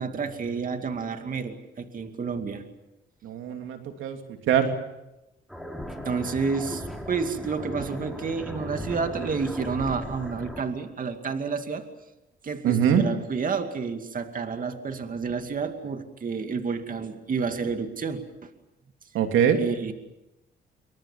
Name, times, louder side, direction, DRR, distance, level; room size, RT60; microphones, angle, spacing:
voice 1, 0.0-2.6 6.0-11.8 12.4-18.5 19.6-19.9, right 5 dB, 45° right, 6 dB, 2.4 m, -30 dB
voice 2, 3.2-4.2 4.5-4.7 12.6-13.0 19.1-19.6, right 9 dB, 85° right, 5 dB, 3.0 m, -22 dB
sound 1, 5.5-10.6, left 1 dB, ahead, 4.8 m, -37 dB
26.5 x 24.0 x 7.4 m, 0.93 s
cardioid pair, 90°, 20 cm